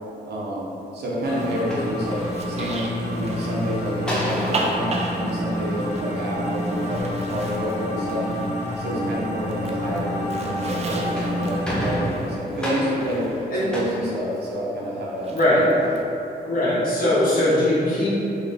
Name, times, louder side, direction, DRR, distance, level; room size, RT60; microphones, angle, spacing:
voice 1, 0.3-8.3 8.8-13.3 13.7-15.9, equal, 85° right, -5 dB, 0.9 m, -29 dB
sound 1, 1.2-12.0, left 1 dB, 45° left, 0.7 m, -28 dB
Zipper (clothing), 1.2-9.0 9.3-13.7 15.2-16.0, right 2 dB, 40° right, 0.4 m, -36 dB
sound 2, 1.7-2.7 4.0-6.5 10.9-15.0, equal, 5° left, 0.6 m, -32 dB
voice 2, 15.3-15.6 16.4-18.2, left 1 dB, 60° left, -9 dB, 1.3 m, -20 dB
3.9 x 2.7 x 3.5 m, 2.9 s
wide cardioid pair, 165°, 16 cm